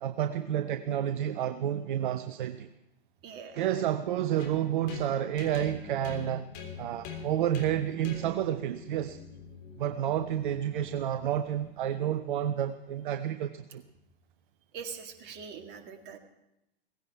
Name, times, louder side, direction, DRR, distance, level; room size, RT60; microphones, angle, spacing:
voice 1, 0.0-2.7 3.5-6.5 6.8-9.2 9.8-13.8, right 11 dB, 55° right, 10 dB, 0.8 m, -30 dB
voice 2, 3.2-3.7 14.7-16.2, right 6 dB, 35° right, 4 dB, 2.2 m, -43 dB
sound 1, 4.4-12.2, left 6 dB, 35° left, 3.4 m, -45 dB
17.0 x 16.0 x 4.6 m, 0.86 s
figure-of-eight pair, 105°, 29 cm